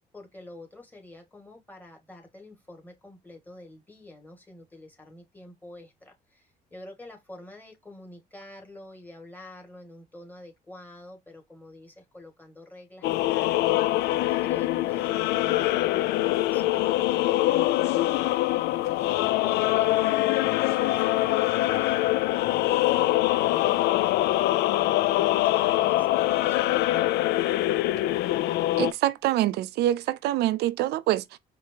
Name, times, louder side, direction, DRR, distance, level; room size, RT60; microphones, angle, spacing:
voice 1, 0.1-13.6 14.1-23.9 24.2-27.3, left 2 dB, 10° left, 1.9 m, -47 dB
sound 1, 13.0-28.9, left 16 dB, 80° left, 0.4 m, -24 dB
voice 2, 28.8-31.4, right 14 dB, 75° right, 0.4 m, -25 dB
5.0 x 2.7 x 2.8 m
cardioid pair, 110°, 17 cm